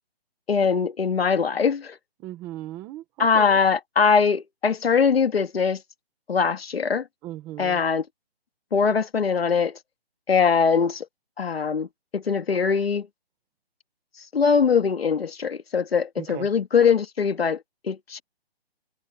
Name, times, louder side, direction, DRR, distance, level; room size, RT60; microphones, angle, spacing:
voice 1, 0.5-2.0 3.2-5.8 6.3-7.0 7.6-8.0 8.7-9.7 10.3-11.1 11.4-11.9 12.1-13.1 14.3-17.6 17.8-18.2, left 6 dB, 70° left, 2.0 m, -22 dB
voice 2, 2.2-3.6 7.2-7.8 16.2-16.5, right 15 dB, 5° right, 1.2 m, -37 dB
hypercardioid pair, 175°, 32 cm